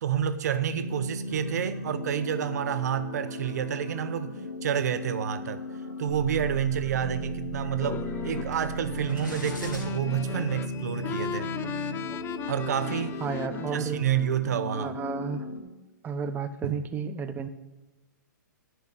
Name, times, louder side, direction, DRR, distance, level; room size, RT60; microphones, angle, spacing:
voice 1, 0.0-5.6 6.0-11.5 12.5-13.2 13.7-15.0 16.6-16.8, right 9 dB, 60° right, 0.7 m, -29 dB
sound 1, 0.7-15.6, left 1 dB, 60° left, 4.2 m, -37 dB
sound 2, 6.1-12.7, right 5 dB, 90° left, 2.8 m, -40 dB
sound 3, 7.8-14.0, left 10 dB, 20° left, 0.5 m, -37 dB
voice 2, 13.2-14.0 14.7-15.5 16.0-17.5, right 5 dB, 15° right, 0.8 m, -32 dB
12.0 x 6.1 x 8.2 m
figure-of-eight pair, 120°, 10 cm